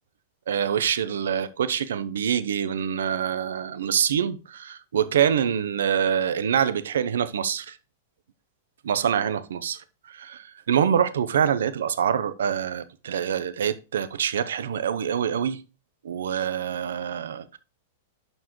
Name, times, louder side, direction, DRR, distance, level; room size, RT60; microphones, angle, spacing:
voice 1, 0.5-7.8 8.8-15.6 16.0-17.6, right 8 dB, 85° right, 0.8 m, -25 dB
11.5 x 4.6 x 3.1 m
hypercardioid pair, 130°, 0 cm